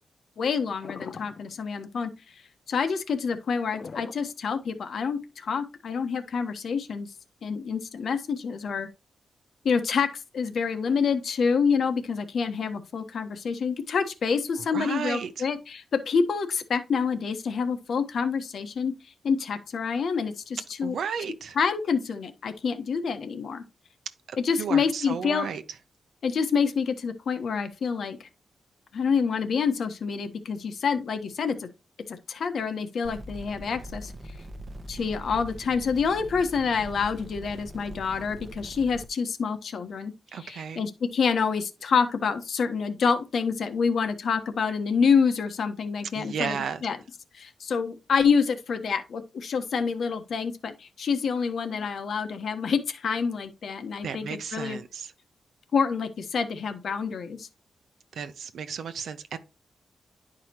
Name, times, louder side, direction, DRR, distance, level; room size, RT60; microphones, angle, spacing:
voice 1, 0.4-2.1 2.7-7.1 7.4-8.9 9.6-18.9 19.2-21.0 21.5-23.6 24.4-25.5 26.2-28.3 28.9-31.7 32.1-34.1 34.9-47.0 47.3-54.8 55.7-57.5, left 5 dB, 65° left, 1.2 m, -27 dB
sound 1, 0.8-1.6 3.7-4.8 5.5-5.6, left 5 dB, 50° left, 0.6 m, -41 dB
voice 2, 14.7-15.4 20.8-21.6 24.3-25.6 40.3-40.8 46.1-46.8 54.0-55.1 58.1-59.4, right 7 dB, 85° right, 0.7 m, -33 dB
sound 2, 33.0-39.1, right 1 dB, 25° right, 0.8 m, -42 dB
10.5 x 4.9 x 2.9 m
wide cardioid pair, 125°, 0 cm